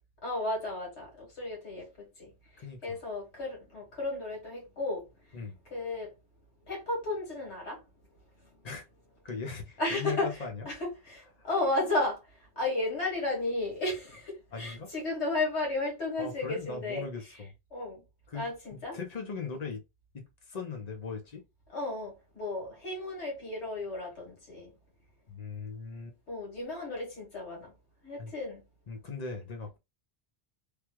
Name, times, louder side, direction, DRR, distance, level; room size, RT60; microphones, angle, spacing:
voice 1, 0.2-2.3 2.8-5.0 5.7-6.1 6.7-7.8 9.8-10.3 10.7-12.2 12.6-17.1 17.7-18.0 18.3-19.0 21.7-24.7 26.3-27.7 28.0-28.7, left 2 dB, 85° left, 1.9 m, -33 dB
voice 2, 2.6-3.0 5.3-5.6 8.6-8.9 9.2-10.7 11.4-11.5 14.5-14.9 16.2-17.5 18.3-19.8 20.1-21.4 25.3-26.1 28.2-28.3 28.9-29.8, left 4 dB, 40° left, 0.8 m, -39 dB
3.4 x 2.3 x 3.0 m
omnidirectional pair, 1.1 m